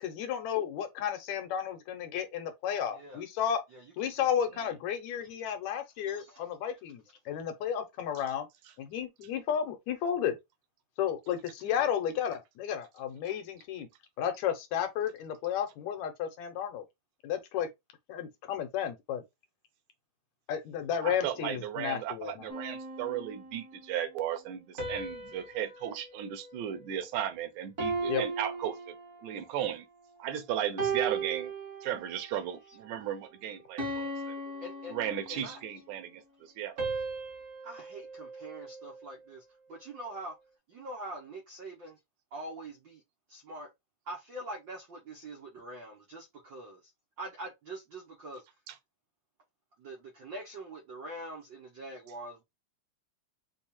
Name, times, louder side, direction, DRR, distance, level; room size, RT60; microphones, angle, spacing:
voice 1, 0.0-3.6 4.0-8.5 8.8-10.4 11.0-13.9 14.2-16.8 17.2-17.7 18.1-19.2 20.5-22.5 28.1-28.2, left 9 dB, 75° left, 2.1 m, -33 dB
voice 2, 6.1-6.5 11.6-11.8 34.6-34.9 35.3-35.6 37.6-39.4 39.7-40.4 40.7-42.0 42.3-43.0 43.3-43.7 44.1-46.9 47.2-48.4 49.8-52.4, right 1 dB, 65° right, 1.1 m, -44 dB
voice 3, 21.0-28.9 29.2-29.9 30.2-31.5 31.8-34.4 34.9-36.8 48.7-48.8, right 10 dB, 85° right, 2.2 m, -35 dB
sound 1, 22.5-23.8 24.8-27.3 27.8-29.5 30.1-30.3 30.8-32.3 32.8-33.1 33.8-35.7 36.8-39.2, right 3 dB, 35° right, 1.3 m, -38 dB
5.3 x 2.3 x 4.2 m
omnidirectional pair, 3.4 m